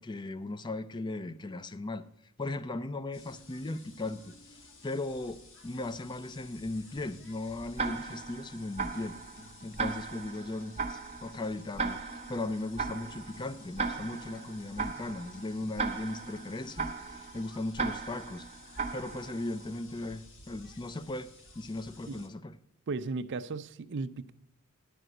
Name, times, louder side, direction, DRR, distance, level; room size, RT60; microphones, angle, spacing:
voice 1, 0.0-2.0 2.4-4.3 4.8-9.2 9.6-18.5 18.9-21.3 21.6-22.5, left 2 dB, 20° left, 14 dB, 0.4 m, -37 dB
sound 1, 3.1-22.3, left 2 dB, 60° left, 1.3 m, -54 dB
Tick-tock, 7.8-19.6, right 4 dB, 30° right, 1.1 m, -37 dB
sound 2, 9.3-10.0 10.3-11.0 11.3-12.0 12.3-13.0 13.3-14.0 14.3-15.0 15.3-16.0 16.3-16.6, left 2 dB, 40° left, 0.8 m, -57 dB
voice 2, 22.9-24.3, right 4 dB, 55° right, 13 dB, 0.5 m, -36 dB
11.0 x 5.1 x 7.7 m, 0.76 s
head